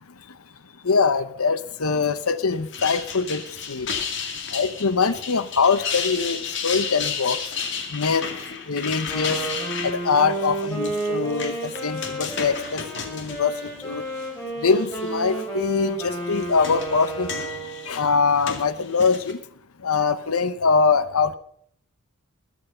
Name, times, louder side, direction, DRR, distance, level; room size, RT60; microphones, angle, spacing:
voice 1, 0.8-3.4 3.7-3.9 4.5-7.4 7.9-8.2 8.7-9.4 9.8-13.5 13.8-14.0 14.6-17.4 17.9-19.4 19.8-21.4, left 5 dB, 90° left, 14 dB, 0.9 m, -23 dB
sound 1, 2.5-14.3 14.7-15.3 16.1-19.3, left 6 dB, 55° left, 2.3 m, -33 dB
Wind instrument woodwind instrument, 9.0-17.9, right 2 dB, 15° left, 7.6 m, -31 dB
21.0 x 8.5 x 5.6 m, 0.65 s
head